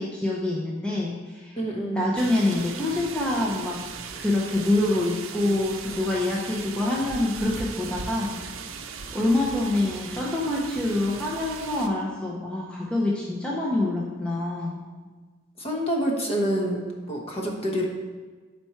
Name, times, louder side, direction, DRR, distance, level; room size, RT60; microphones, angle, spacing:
voice 1, 0.0-1.6 1.9-3.9 4.2-8.4 9.1-14.8, left 2 dB, 5° left, -4 dB, 0.6 m, -26 dB
voice 2, 1.6-2.0 15.6-16.8 17.1-17.8, equal, 30° left, -1 dB, 1.0 m, -27 dB
sound 1, 2.2-11.9, right 5 dB, 70° right, 0.5 m, -38 dB
5.9 x 4.4 x 4.3 m, 1.4 s
head